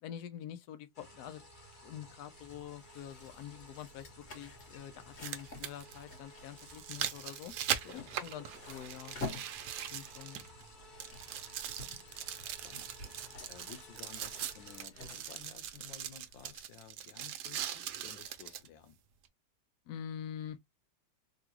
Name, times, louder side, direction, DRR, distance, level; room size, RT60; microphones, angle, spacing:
voice 1, 0.0-1.4 1.8-7.5 7.9-9.2 9.9-10.4 19.9-20.7, left 9 dB, 70° left, 1.1 m, -46 dB
sound 1, 0.9-14.9, left 1 dB, 35° left, 0.8 m, -56 dB
sound 2, 1.7-1.8 3.8-3.9 5.0-10.7 11.0-18.7 19.3-19.4, right 10 dB, 70° right, 1.1 m, -41 dB
sound 3, 2.3-16.6, left 3 dB, 50° left, 1.9 m, -50 dB
voice 2, 12.3-13.0 13.5-19.0, left 8 dB, 90° left, 1.5 m, -54 dB
3.7 x 2.3 x 2.9 m
omnidirectional pair, 2.0 m